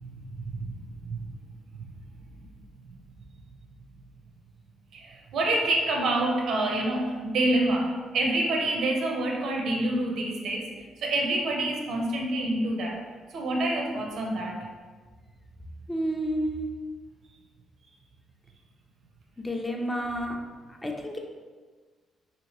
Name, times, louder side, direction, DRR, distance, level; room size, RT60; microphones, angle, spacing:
voice 1, 0.0-1.3 2.9-3.0 4.9-13.0 13.3-14.7, right 1 dB, 70° right, 1 dB, 0.5 m, -27 dB
voice 2, 15.9-16.7 19.4-20.4 20.8-21.2, equal, 15° left, 1 dB, 0.4 m, -30 dB
2.8 x 2.6 x 2.9 m, 1.4 s
cardioid pair, 90°, 0 cm